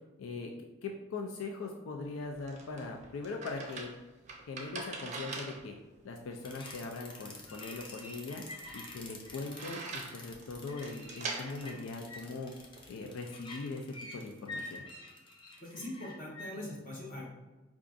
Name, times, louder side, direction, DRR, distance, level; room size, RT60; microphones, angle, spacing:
voice 1, 0.2-0.5 0.8-3.9 4.5-5.7 6.0-8.4 8.7-12.5 12.9-14.8, left 3 dB, 85° left, 2 dB, 0.4 m, -41 dB
sound 1, 2.0-12.9, right 3 dB, 35° right, 0.5 m, -45 dB
sound 2, 6.4-16.5, left 2 dB, 25° left, 0.4 m, -47 dB
voice 2, 15.6-17.3, left 1 dB, 40° left, -4 dB, 1.0 m, -42 dB
4.6 x 2.4 x 2.5 m, 1.1 s
head